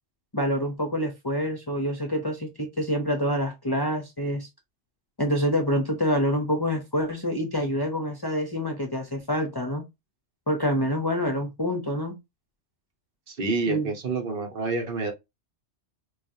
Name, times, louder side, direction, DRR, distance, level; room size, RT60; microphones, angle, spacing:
voice 1, 0.3-4.5 5.2-9.8 10.5-12.1 13.6-13.9, equal, 25° left, 0.6 m, -26 dB
voice 2, 13.3-15.1, right 3 dB, 55° right, 1.0 m, -28 dB
4.8 x 2.4 x 2.6 m
omnidirectional pair, 1.2 m